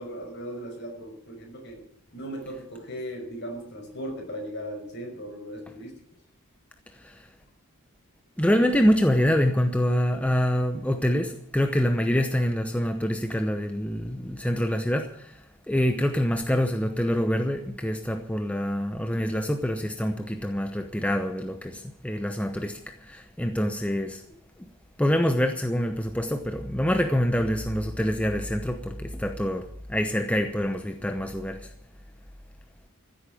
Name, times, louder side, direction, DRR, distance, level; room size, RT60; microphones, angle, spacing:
voice 1, 0.0-1.8 2.1-5.9, equal, 50° left, 5.6 m, -37 dB
voice 2, 6.9-7.3 8.4-24.2 25.0-31.7, equal, 5° left, 0.8 m, -26 dB
15.0 x 8.4 x 9.1 m
head